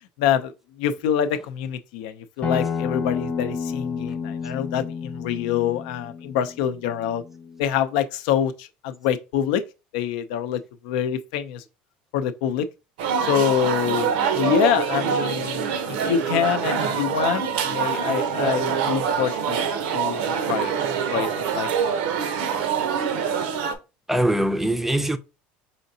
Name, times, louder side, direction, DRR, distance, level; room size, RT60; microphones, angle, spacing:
voice 1, 0.2-0.5 0.8-7.2 7.6-9.6 9.9-11.6 12.1-12.7 13.2-19.6 19.9-20.2 20.5-20.7 21.1-22.1, left 9 dB, 80° left, 0.5 m, -26 dB
Acoustic guitar, 2.4-7.6, left 6 dB, 30° left, 1.0 m, -30 dB
sound 1, 13.0-23.8, right 7 dB, 85° right, 0.7 m, -25 dB
voice 2, 24.1-25.2, right 1 dB, 5° right, 0.4 m, -22 dB
5.0 x 2.7 x 2.7 m
supercardioid pair, 110°, 5 cm